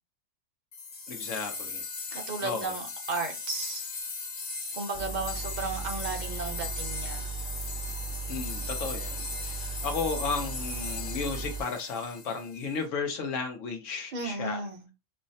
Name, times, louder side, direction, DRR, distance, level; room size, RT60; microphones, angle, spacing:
sound 1, 0.7-12.7, left 4 dB, 50° left, 1.1 m, -38 dB
voice 1, 1.1-1.8 2.4-2.7 8.3-14.6, left 4 dB, 80° left, 1.0 m, -34 dB
voice 2, 2.1-3.9 4.7-7.3 14.1-14.9, right 3 dB, 40° right, 0.8 m, -34 dB
sound 2, 4.9-11.6, right 6 dB, 5° right, 0.6 m, -37 dB
5.5 x 2.0 x 2.6 m
omnidirectional pair, 1.3 m